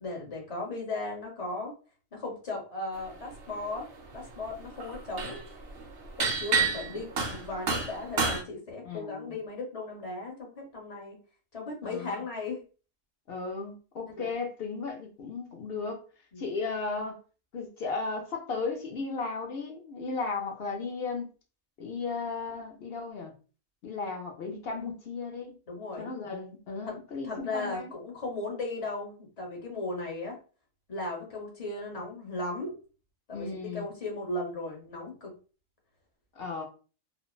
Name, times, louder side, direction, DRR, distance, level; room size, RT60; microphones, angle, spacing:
voice 1, 0.0-1.7 2.1-5.4 6.2-11.2 11.5-12.6 14.2-14.3 16.3-16.4 25.7-26.1 26.9-27.0 27.2-30.4 30.9-32.7 33.3-33.5 33.7-35.3, left 2 dB, 30° left, 0.9 m, -36 dB
sound 1, 3.3-3.8 4.1-8.4, right 5 dB, 60° right, 0.7 m, -29 dB
voice 2, 6.6-7.0 8.8-9.4 11.8-12.2 13.3-16.0 16.4-17.2 17.5-21.3 21.8-23.3 23.8-25.6 26.0-27.9 33.3-33.9 36.3-36.6, left 4 dB, 60° left, 0.7 m, -35 dB
3.1 x 2.0 x 2.3 m
omnidirectional pair, 1.4 m